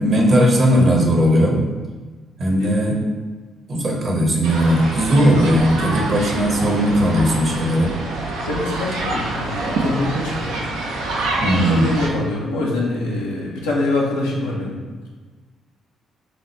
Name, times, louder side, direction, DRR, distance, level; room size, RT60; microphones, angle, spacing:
voice 1, 0.0-1.6 2.4-3.0 3.7-7.9 11.4-11.9, equal, 45° right, 0 dB, 1.0 m, -17 dB
sound 1, 4.4-12.1, right 2 dB, 75° right, 0.6 m, -26 dB
voice 2, 8.5-10.6 11.7-14.8, left 2 dB, 80° left, -4 dB, 0.8 m, -24 dB
6.1 x 2.4 x 3.2 m, 1.3 s
figure-of-eight pair, 45°, 0 cm